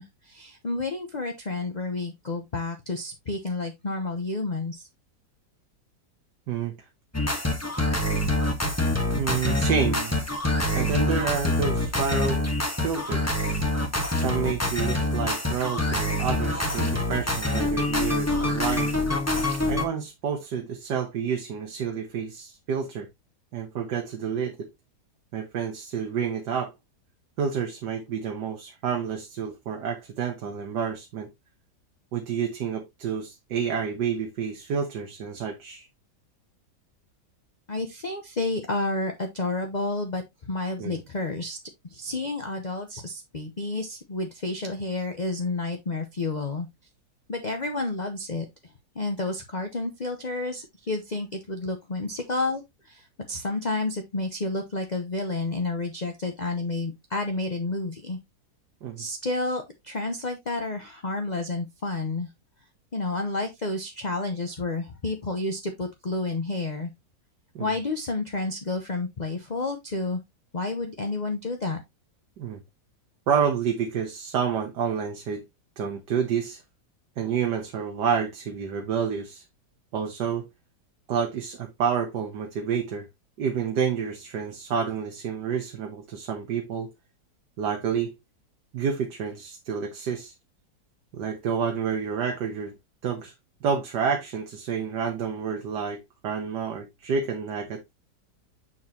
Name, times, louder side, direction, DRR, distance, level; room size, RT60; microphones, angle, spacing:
voice 1, 0.0-4.9 37.7-41.6 41.9-46.7 47.3-48.4 48.9-58.2 59.0-62.3 62.9-66.9 67.6-70.2 70.5-71.8, left 2 dB, 30° left, 0.9 m, -30 dB
sound 1, 7.1-19.9, left 1 dB, 10° left, 1.2 m, -25 dB
voice 2, 9.2-10.1 10.7-12.4 12.8-13.5 14.1-18.9 19.7-23.1 23.5-24.7 25.3-26.7 27.4-31.3 32.1-35.9 40.8-41.0 58.8-59.0 67.5-67.7 72.4-72.6 73.3-75.4 75.8-76.6 77.2-79.4 79.9-80.5 81.1-83.1 83.4-86.9 87.6-88.1 88.7-90.3 91.1-92.7 93.0-93.3 93.6-97.8, right 7 dB, 90° right, 1.7 m, -29 dB
7.2 x 6.2 x 2.8 m
omnidirectional pair, 1.8 m